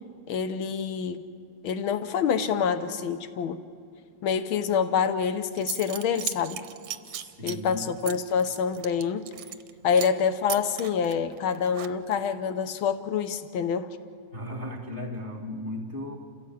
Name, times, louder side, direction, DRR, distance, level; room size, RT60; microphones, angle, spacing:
voice 1, 0.3-1.2 1.6-3.6 4.2-6.6 7.4-9.3 9.8-13.9, left 6 dB, 70° left, 11 dB, 1.2 m, -26 dB
Zipper (clothing) / Coin (dropping), 5.2-5.3 5.6-9.7 10.0-10.2 10.5-12.3, right 12 dB, 70° right, 1.6 m, -37 dB
voice 2, 7.0-7.9 14.3-16.2, left 1 dB, 25° left, 2 dB, 1.7 m, -36 dB
29.0 x 16.5 x 8.5 m, 2.4 s
omnidirectional pair, 3.5 m